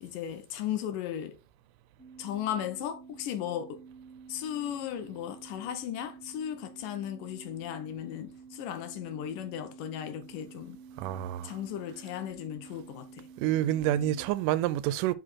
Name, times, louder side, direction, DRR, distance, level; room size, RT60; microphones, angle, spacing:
voice 1, 0.0-1.4 2.2-3.8 4.3-10.8 11.4-13.3, left 10 dB, 85° left, 2.5 m, -36 dB
sound 1, 2.0-14.3, right 5 dB, 5° left, 1.5 m, -50 dB
voice 2, 11.0-11.5 13.4-15.1, right 13 dB, 85° right, 2.2 m, -28 dB
6.8 x 5.0 x 4.1 m
omnidirectional pair, 3.7 m